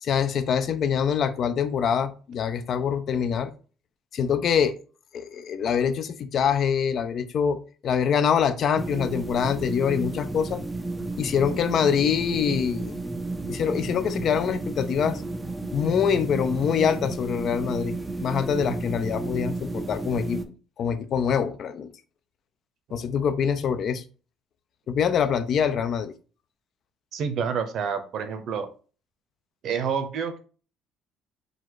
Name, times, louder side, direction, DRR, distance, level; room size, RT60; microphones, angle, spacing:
voice 1, 0.0-3.5 4.1-4.7 5.1-7.6 7.8-10.6 11.2-13.0 13.5-15.2 15.7-17.9 18.2-20.4 20.8-21.9 22.9-24.0 24.9-26.1, left 7 dB, 45° left, 11 dB, 0.5 m, -24 dB
sound 1, 8.8-20.4, right 2 dB, 10° right, 0.5 m, -32 dB
voice 2, 27.1-28.7 29.6-30.4, right 6 dB, 55° right, 8 dB, 0.8 m, -28 dB
4.0 x 2.5 x 4.6 m, 0.37 s
cardioid pair, 145°, 0 cm